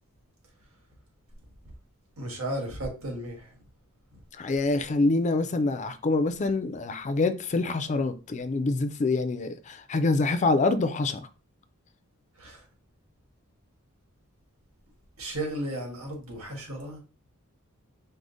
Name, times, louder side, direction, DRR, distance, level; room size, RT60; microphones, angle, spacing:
voice 1, 2.2-3.5 4.1-4.2 12.4-12.6 15.2-17.0, right 1 dB, 90° right, 1.6 m, -34 dB
voice 2, 4.4-11.3, left 3 dB, 35° left, 0.4 m, -26 dB
4.9 x 2.1 x 3.9 m
head